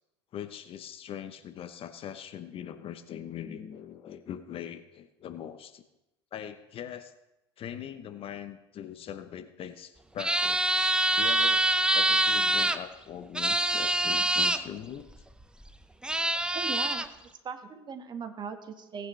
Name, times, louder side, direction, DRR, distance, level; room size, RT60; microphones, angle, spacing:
voice 1, 0.3-5.8 6.3-7.1 7.6-10.8 11.2-11.7 11.9-15.2, left 9 dB, 40° left, 11 dB, 0.9 m, -41 dB
sound 1, 10.2-12.8 13.3-14.6 15.6-15.7 16.0-17.1, right 2 dB, 5° right, 0.7 m, -25 dB
voice 2, 16.5-17.1 17.4-19.1, right 6 dB, 30° right, 6 dB, 1.6 m, -38 dB
18.5 x 9.3 x 3.3 m, 0.95 s
hypercardioid pair, 75°, 14 cm